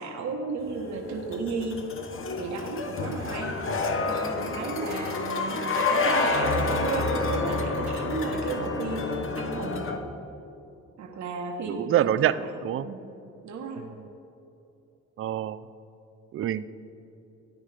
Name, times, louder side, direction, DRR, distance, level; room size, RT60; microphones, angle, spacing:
voice 1, 0.0-1.8 2.4-3.6 4.1-9.9 11.0-12.5 12.7-13.0 13.4-13.9, right 3 dB, 70° right, 1 dB, 1.2 m, -34 dB
sound 1, 0.7-10.0, left 3 dB, 45° left, 1.0 m, -29 dB
voice 2, 11.6-12.9 13.8-14.1 15.2-15.6 16.3-16.6, right 11 dB, 45° right, 15 dB, 0.4 m, -26 dB
14.0 x 9.7 x 3.3 m, 2.8 s
cardioid pair, 90°, 30 cm